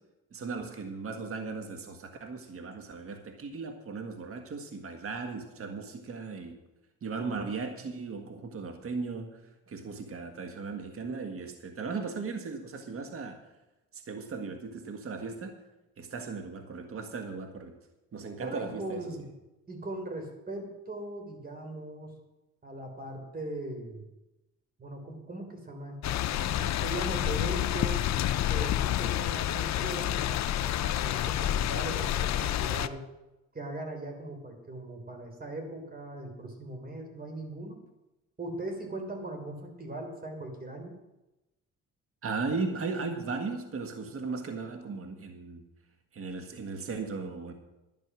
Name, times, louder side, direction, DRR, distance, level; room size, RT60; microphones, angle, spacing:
voice 1, 0.3-6.6 7.0-9.4 9.7-13.4 13.9-15.6 16.0-17.8 18.1-19.2 42.2-45.7 46.1-47.5, right 4 dB, 45° right, 5 dB, 1.6 m, -37 dB
voice 2, 18.4-19.3 19.7-22.2 22.6-24.0 24.8-28.0 28.5-33.0 33.5-37.8 38.4-41.0, right 1 dB, 30° right, 4 dB, 3.6 m, -39 dB
sound 1, 26.0-32.9, left 12 dB, 65° left, 0.6 m, -29 dB
11.0 x 10.5 x 6.2 m, 0.99 s
cardioid pair, 90°, 30 cm